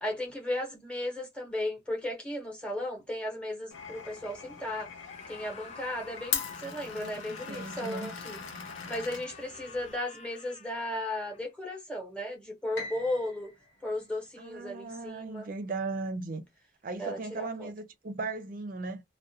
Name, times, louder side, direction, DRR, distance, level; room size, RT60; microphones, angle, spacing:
voice 1, 0.0-4.9 5.3-8.4 8.9-13.5 13.8-15.5 17.0-17.7, left 1 dB, 5° left, 0.8 m, -35 dB
Glass, 3.7-10.0, left 7 dB, 90° left, 0.6 m, -40 dB
Screaming, 5.0-11.5, left 5 dB, 35° left, 0.4 m, -49 dB
voice 2, 6.8-8.1 14.4-16.4 16.8-19.0, right 3 dB, 45° right, 0.4 m, -37 dB
Piano, 12.8-15.0, left 2 dB, 65° left, 0.9 m, -45 dB
2.4 x 2.1 x 2.7 m
head